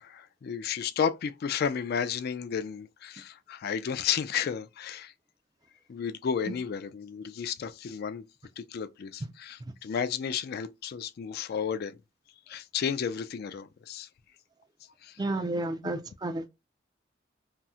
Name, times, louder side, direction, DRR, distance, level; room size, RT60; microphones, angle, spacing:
voice 1, 0.0-5.1 5.9-8.3 8.6-12.0 12.5-14.1 15.0-15.2, left 7 dB, 55° left, 0.3 m, -32 dB
voice 2, 15.2-16.5, right 2 dB, 20° right, 0.4 m, -31 dB
2.7 x 2.0 x 3.5 m
head